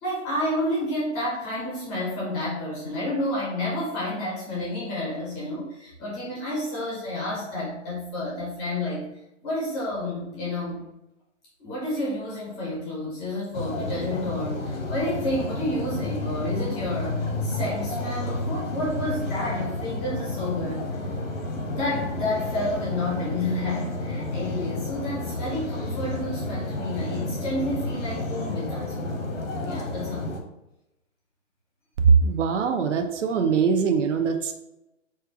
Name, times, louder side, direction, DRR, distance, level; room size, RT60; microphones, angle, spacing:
voice 1, 0.0-9.1 9.4-10.8 11.6-20.9 21.7-29.2 29.6-30.4, left 1 dB, 5° left, -5 dB, 0.5 m, -30 dB
sound 1, 13.5-30.4, left 2 dB, 90° left, 1.3 m, -31 dB
voice 2, 32.0-34.5, right 5 dB, 70° right, 5 dB, 0.7 m, -21 dB
4.4 x 2.4 x 4.8 m, 0.89 s
hypercardioid pair, 160°, 37 cm